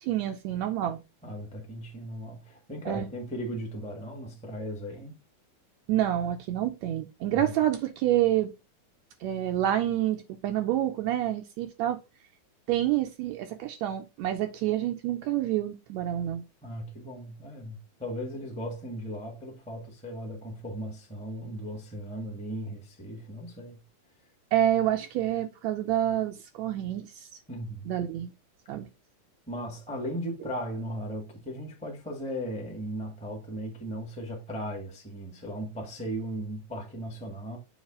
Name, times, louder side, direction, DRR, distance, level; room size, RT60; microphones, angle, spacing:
voice 1, 0.0-1.0 2.9-3.1 5.9-8.5 9.2-12.0 12.7-16.4 24.5-27.3 27.9-28.3 28.7-28.9, right 12 dB, 75° right, 1.8 m, -28 dB
voice 2, 1.2-5.2 7.3-7.5 16.6-23.8 27.5-27.9 29.5-37.6, equal, 5° left, 0.9 m, -37 dB
7.2 x 3.3 x 4.7 m
omnidirectional pair, 3.4 m